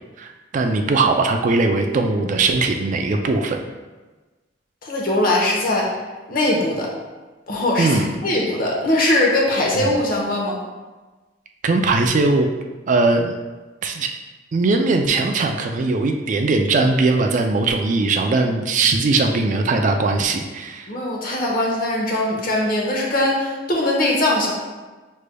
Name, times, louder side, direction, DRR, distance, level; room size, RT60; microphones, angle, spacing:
voice 1, 0.2-3.6 7.8-8.1 9.8-9.9 11.6-12.5 12.9-13.4 13.8-14.1 14.5-20.9, right 3 dB, 45° right, 4 dB, 0.4 m, -20 dB
voice 2, 4.8-5.9 6.3-6.9 7.5-7.9 8.2-10.6 20.9-24.5, left 1 dB, 50° left, -2 dB, 0.9 m, -20 dB
6.2 x 3.3 x 2.2 m, 1.2 s
head